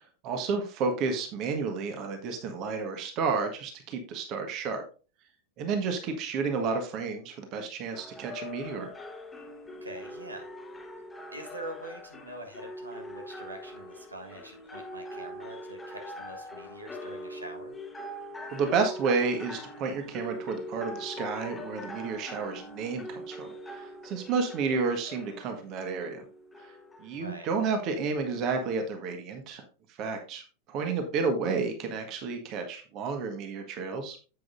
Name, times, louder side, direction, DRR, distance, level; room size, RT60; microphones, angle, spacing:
voice 1, 0.2-4.8 5.6-8.9 18.5-26.2 26.6-26.7 27.0-29.6 30.0-30.4 30.7-34.2, right 4 dB, 40° right, 5 dB, 1.5 m, -31 dB
sound 1, 7.9-27.5, left 1 dB, 10° left, 1.2 m, -43 dB
voice 2, 9.8-10.5 11.3-17.7 27.1-27.5, right 1 dB, 80° right, 3 dB, 1.7 m, -44 dB
9.4 x 8.1 x 2.6 m, 0.35 s
figure-of-eight pair, 90°, 0 cm